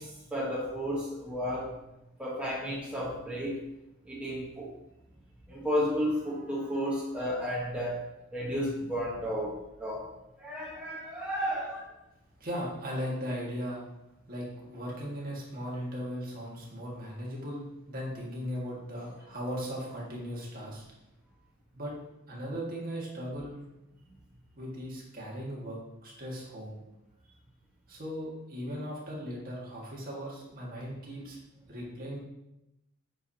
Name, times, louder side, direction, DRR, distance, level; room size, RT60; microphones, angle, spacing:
voice 1, 0.0-1.7 2.2-3.6 4.1-4.7 5.5-10.1 10.4-11.8, equal, 5° right, -6 dB, 1.1 m, -33 dB
voice 2, 12.4-13.8 14.3-20.8 21.7-22.0 22.3-23.7 24.6-26.8 27.9-31.4 31.7-32.2, equal, 40° right, -4 dB, 1.8 m, -38 dB
8.1 x 4.9 x 2.8 m, 0.90 s
head